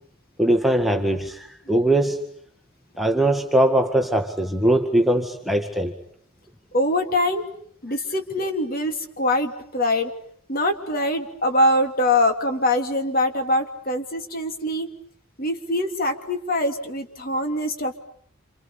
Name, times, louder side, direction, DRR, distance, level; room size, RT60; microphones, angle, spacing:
voice 1, 0.4-2.2 3.0-5.9, right 1 dB, ahead, 3 dB, 1.9 m, -21 dB
voice 2, 6.7-7.4 7.8-10.1 10.5-14.9 15.4-18.0, left 1 dB, 40° left, 5 dB, 3.1 m, -23 dB
29.0 x 28.0 x 7.2 m, 0.63 s
head